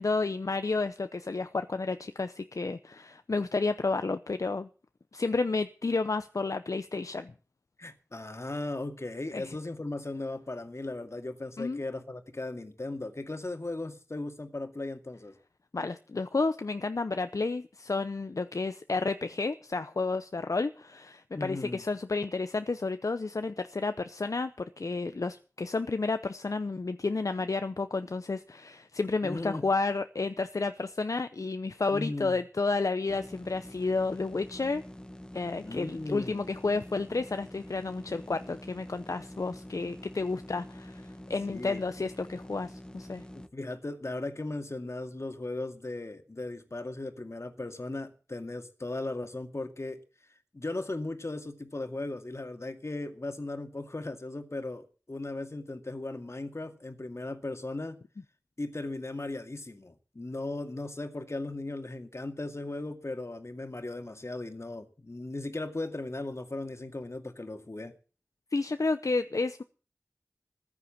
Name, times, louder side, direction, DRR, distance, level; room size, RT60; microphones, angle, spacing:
voice 1, 0.0-4.7 5.1-7.3 9.3-9.6 11.6-11.8 15.7-34.8 35.3-43.2 68.5-69.6, left 3 dB, 80° left, 0.7 m, -31 dB
voice 2, 7.8-15.4 21.3-21.8 29.2-29.6 31.9-32.4 35.6-36.5 41.5-41.8 43.4-50.0 50.5-58.0 58.6-67.9, left 2 dB, 55° left, 2.2 m, -37 dB
sound 1, 33.1-43.5, left 1 dB, 15° left, 1.6 m, -46 dB
15.0 x 9.7 x 7.3 m
wide cardioid pair, 40°, 6 cm